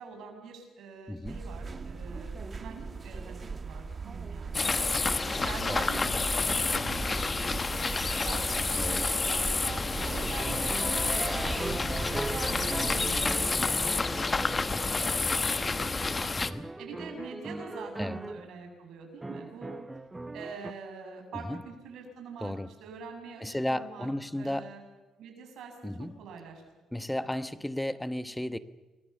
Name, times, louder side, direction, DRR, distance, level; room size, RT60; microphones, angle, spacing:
voice 1, 0.0-10.8 11.1-12.0 12.3-15.2 15.5-16.3 16.8-19.8 20.3-24.1 24.4-24.8 25.2-26.6, right 5 dB, 80° right, 4 dB, 7.3 m, -45 dB
voice 2, 1.1-1.5 5.7-5.9 8.8-9.1 10.1-10.4 12.0-12.3 16.4-16.7 18.0-18.2 21.3-21.6 22.4-22.7 23.4-24.7 25.8-26.2 26.9-28.6, left 1 dB, 5° left, 12 dB, 1.2 m, -34 dB
sound 1, 1.2-13.5, right 4 dB, 35° right, 1.5 m, -39 dB
sound 2, 4.5-16.5, left 3 dB, 30° left, 1.2 m, -29 dB
sound 3, 10.4-15.4 15.8-18.5 19.2-20.7, right 2 dB, 15° right, 0.9 m, -39 dB
28.0 x 22.5 x 7.0 m, 1.2 s
cardioid pair, 90°, 0 cm